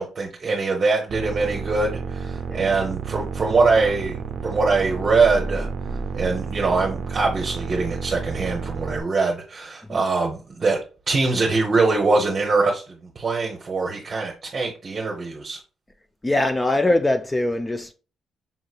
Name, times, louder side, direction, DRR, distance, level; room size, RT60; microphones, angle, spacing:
voice 1, 0.0-5.7 6.1-10.8 11.1-15.6, right 3 dB, 40° right, 0.9 m, -23 dB
sound 1, 1.1-9.0, right 5 dB, 65° right, 0.5 m, -31 dB
voice 2, 16.2-17.9, left 2 dB, 15° left, 0.4 m, -22 dB
5.6 x 3.1 x 2.4 m
cardioid pair, 90°, 0 cm